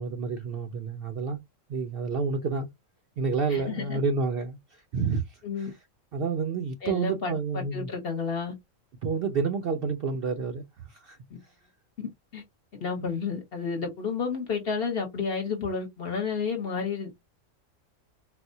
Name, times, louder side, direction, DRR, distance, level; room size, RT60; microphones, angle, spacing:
voice 1, 0.0-1.4 1.7-2.7 3.2-5.7 6.1-7.9 9.0-11.2 13.0-13.1, right 5 dB, 60° right, 0.6 m, -29 dB
voice 2, 3.5-4.0 5.4-5.7 6.8-8.5 12.3-12.4 12.8-17.1, left 5 dB, 50° left, 1.1 m, -31 dB
4.0 x 2.1 x 2.6 m
omnidirectional pair, 1.4 m